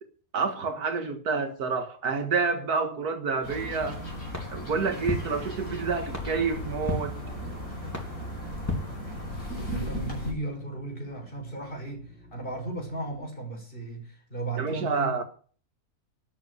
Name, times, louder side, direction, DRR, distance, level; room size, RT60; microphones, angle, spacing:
voice 1, 0.3-4.0 4.5-7.2 14.6-15.2, right 5 dB, 90° right, 2.1 m, -28 dB
sound 1, 3.4-10.3, equal, 70° left, 6.7 m, -36 dB
sound 2, 4.3-9.6, left 1 dB, 10° left, 3.4 m, -37 dB
sound 3, 4.9-13.3, equal, 5° right, 4.0 m, -48 dB
voice 2, 9.6-15.2, right 2 dB, 35° left, 6.1 m, -35 dB
13.0 x 8.7 x 9.5 m
omnidirectional pair, 1.6 m